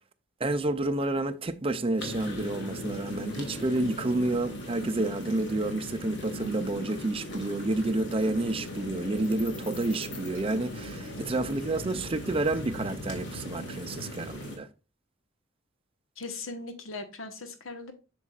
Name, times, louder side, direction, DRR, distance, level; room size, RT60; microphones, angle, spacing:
voice 1, 0.4-14.7, right 2 dB, 30° right, 0.5 m, -29 dB
sound 1, 2.0-14.6, equal, 60° left, 2.0 m, -38 dB
voice 2, 16.2-17.9, left 3 dB, 85° left, 1.3 m, -39 dB
7.9 x 6.1 x 2.4 m
head